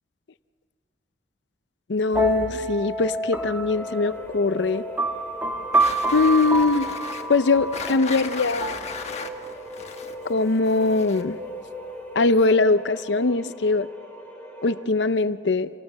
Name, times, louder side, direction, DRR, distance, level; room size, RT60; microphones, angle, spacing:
voice 1, 1.9-4.8 6.1-6.9 7.3-8.8 10.3-11.4 12.1-13.9 14.6-15.7, left 3 dB, 70° left, 13 dB, 0.6 m, -21 dB
sound 1, 2.1-9.7, right 1 dB, 10° right, 2.1 m, -28 dB
sound 2, 3.7-14.8, equal, 10° left, 3.7 m, -40 dB
sound 3, 5.7-11.4, left 5 dB, 35° left, 1.3 m, -37 dB
28.5 x 19.5 x 7.5 m, 2.3 s
head